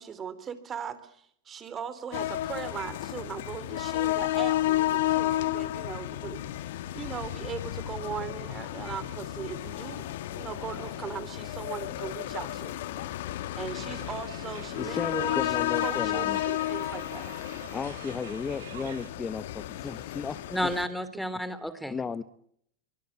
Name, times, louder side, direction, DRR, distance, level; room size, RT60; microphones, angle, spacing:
voice 1, 0.0-10.1 10.3-12.8 13.5-17.3, right 7 dB, 30° right, 13 dB, 3.5 m, -39 dB
sound 1, 2.1-20.9, left 15 dB, 70° left, 1.6 m, -32 dB
sound 2, 13.6-19.1, right 10 dB, 80° right, 4.5 m, -49 dB
voice 2, 14.8-16.4 17.7-20.7 21.9-22.2, left 5 dB, 20° left, 13 dB, 1.1 m, -35 dB
voice 3, 20.5-22.0, equal, ahead, 14 dB, 2.9 m, -31 dB
24.5 x 19.0 x 8.5 m, 0.68 s
hypercardioid pair, 110°, 0 cm